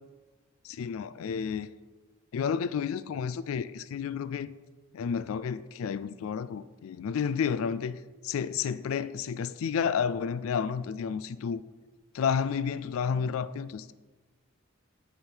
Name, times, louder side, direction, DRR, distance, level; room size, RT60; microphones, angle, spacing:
voice 1, 0.6-1.7 2.3-4.5 4.9-8.0 8.2-11.6 12.1-13.9, left 6 dB, 85° left, 0.3 m, -31 dB
9.5 x 5.1 x 4.5 m
head